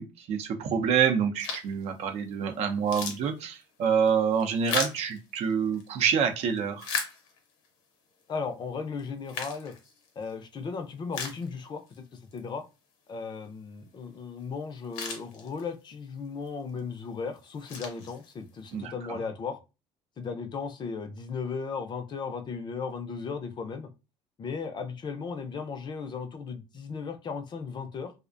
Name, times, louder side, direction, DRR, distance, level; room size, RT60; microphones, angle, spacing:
voice 1, 0.0-6.9 18.7-19.2, right 7 dB, 60° right, 0.5 m, -27 dB
sound 1, 1.4-1.8 2.3-2.4 2.7-5.9 6.4-7.7 8.2-8.3 9.0-10.3 10.7-10.8 11.1-12.0 12.3-12.4 14.4-14.5 14.7-15.9 16.5-16.8 17.3-18.6, left 5 dB, 85° left, 0.8 m, -37 dB
voice 2, 8.3-9.7 10.2-11.8 12.1-12.6 13.1-19.6 20.2-23.9 24.4-28.1, left 5 dB, 40° left, 0.5 m, -36 dB
2.4 x 2.1 x 2.4 m
supercardioid pair, 90°, 12 cm